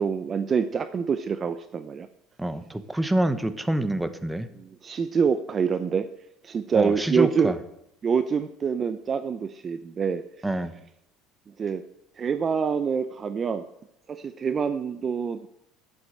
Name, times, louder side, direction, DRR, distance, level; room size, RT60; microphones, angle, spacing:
voice 1, 0.0-2.1 4.5-6.1 6.4-7.5 8.0-10.5 11.6-11.9 12.2-13.7 14.1-15.5, right 6 dB, 30° right, 12 dB, 0.7 m, -26 dB
voice 2, 2.4-4.5 6.7-7.5 10.4-10.7, right 1 dB, 5° right, 11 dB, 1.1 m, -26 dB
11.5 x 8.2 x 8.0 m, 0.80 s
supercardioid pair, 115°, 0 cm